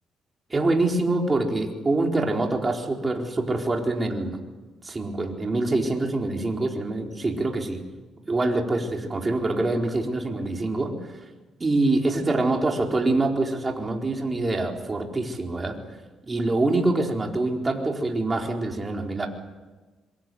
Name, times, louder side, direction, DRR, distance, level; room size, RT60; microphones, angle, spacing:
voice 1, 0.5-4.4 4.8-7.8 8.3-10.9 11.6-15.8 16.3-19.3, right 2 dB, 25° right, 1 dB, 4.3 m, -25 dB
26.0 x 24.0 x 7.8 m, 1.2 s
cardioid pair, 90°, 0 cm